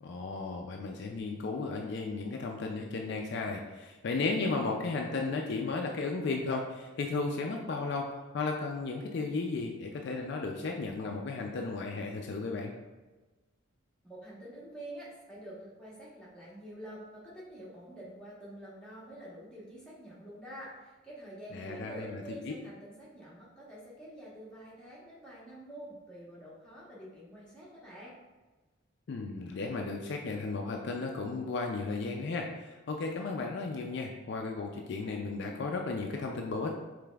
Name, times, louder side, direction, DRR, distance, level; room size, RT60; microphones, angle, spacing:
voice 1, 0.0-8.1 8.3-12.7 21.5-22.5 29.1-36.8, left 3 dB, 55° left, 2 dB, 0.3 m, -34 dB
voice 2, 14.0-28.2, right 1 dB, 5° left, -8 dB, 1.1 m, -47 dB
5.0 x 3.3 x 2.3 m, 1.2 s
head